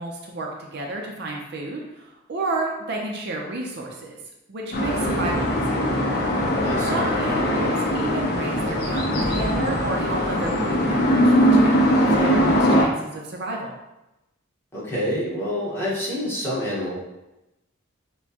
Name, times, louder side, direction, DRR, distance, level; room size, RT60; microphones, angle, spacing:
voice 1, 0.0-4.2 4.5-5.9 6.9-13.7, right 2 dB, 55° right, 0 dB, 0.6 m, -31 dB
sound 1, 4.7-12.8, equal, 50° left, 0.7 m, -21 dB
voice 2, 6.6-7.0 14.7-17.0, left 1 dB, 10° left, -7 dB, 1.2 m, -27 dB
6.2 x 2.2 x 2.8 m, 0.95 s
head